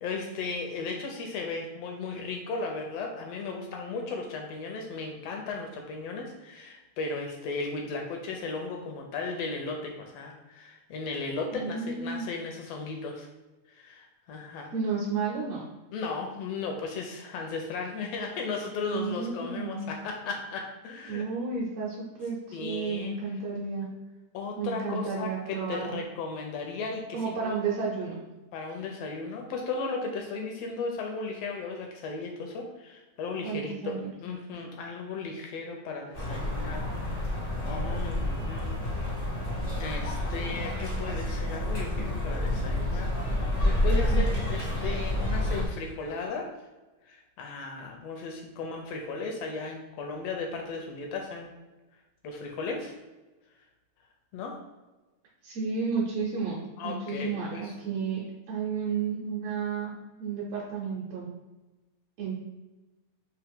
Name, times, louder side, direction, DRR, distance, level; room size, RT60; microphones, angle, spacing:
voice 1, 0.0-13.3 13.7-14.7 15.9-21.3 22.5-23.1 24.3-27.6 28.5-37.3 37.6-38.7 39.7-46.5 47.1-51.5 52.2-52.9 54.3-54.6 56.8-57.7, left 4 dB, 80° left, 2 dB, 1.4 m, -36 dB
voice 2, 11.5-12.3 14.7-15.6 18.9-19.9 21.1-23.9 24.6-26.0 27.1-28.2 33.4-34.1 43.9-44.2 55.4-59.9 60.2-61.3 62.2-62.4, right 5 dB, 70° right, -5 dB, 1.8 m, -32 dB
sound 1, 36.1-45.7, left 1 dB, 50° left, 0.6 m, -29 dB
4.8 x 2.8 x 3.5 m, 1.1 s
omnidirectional pair, 3.4 m